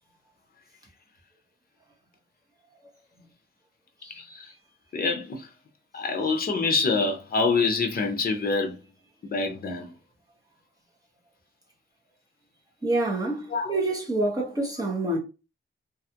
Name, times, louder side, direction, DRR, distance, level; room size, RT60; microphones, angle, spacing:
voice 1, 4.1-4.5 4.9-5.5 5.9-8.8 9.3-9.9 13.5-13.8, left 4 dB, 45° left, 0.6 m, -26 dB
voice 2, 12.8-15.2, right 2 dB, 15° right, 0.9 m, -27 dB
2.5 x 2.3 x 2.8 m
wide cardioid pair, 130°, 21 cm